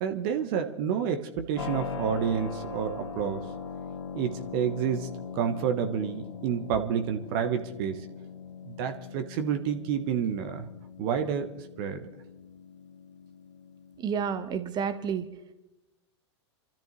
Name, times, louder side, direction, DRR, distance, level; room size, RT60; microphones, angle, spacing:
voice 1, 0.0-3.4 4.1-5.1 5.3-8.1 8.6-10.7 11.0-12.1, right 8 dB, 50° right, 8 dB, 1.3 m, -29 dB
Keyboard (musical), 1.6-14.3, left 5 dB, 75° left, 1.3 m, -41 dB
voice 2, 14.0-15.2, right 7 dB, 30° right, 10 dB, 1.3 m, -30 dB
29.5 x 13.5 x 3.2 m, 0.93 s
figure-of-eight pair, 95°, 15 cm